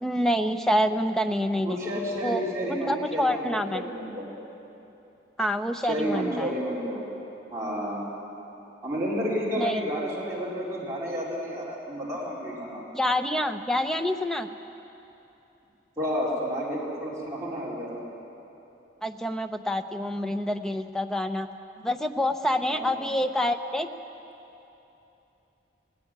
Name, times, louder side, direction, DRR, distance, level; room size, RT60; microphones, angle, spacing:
voice 1, 0.0-1.8 2.2-2.4 2.7-3.8 5.4-6.5 9.6-9.9 12.9-14.5 19.0-21.5 21.8-23.9, equal, 5° left, 6 dB, 0.7 m, -27 dB
voice 2, 1.6-4.3 5.8-7.1 7.5-8.1 8.8-12.8 16.0-18.0 22.7-23.0, equal, 15° right, -7 dB, 4.0 m, -31 dB
18.5 x 18.0 x 9.7 m, 2.9 s
head